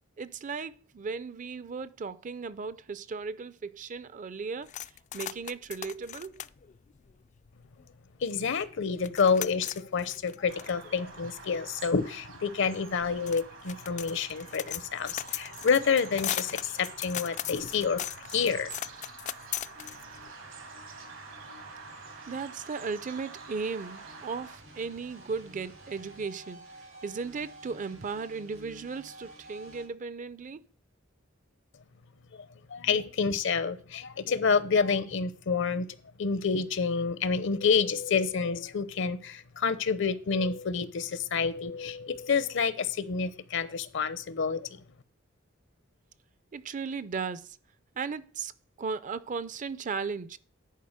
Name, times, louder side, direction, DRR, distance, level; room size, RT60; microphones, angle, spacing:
voice 1, 0.2-4.7 5.1-6.4 22.3-26.6 27.0-30.6 46.5-47.6 48.0-48.5 48.8-50.4, right 5 dB, 40° right, 0.5 m, -36 dB
sound 1, 4.7-7.8 8.3-8.4 8.6-20.3, left 11 dB, 35° left, 0.3 m, -39 dB
voice 2, 8.2-18.7 32.3-35.8 36.2-44.7, left 5 dB, 65° left, 0.7 m, -28 dB
Bird vocalization bird call bird song, 10.5-24.6, right 4 dB, 75° right, 1.7 m, -47 dB
sound 2, 19.7-29.9, right 1 dB, 90° right, 4.7 m, -51 dB
10.5 x 4.7 x 6.5 m
head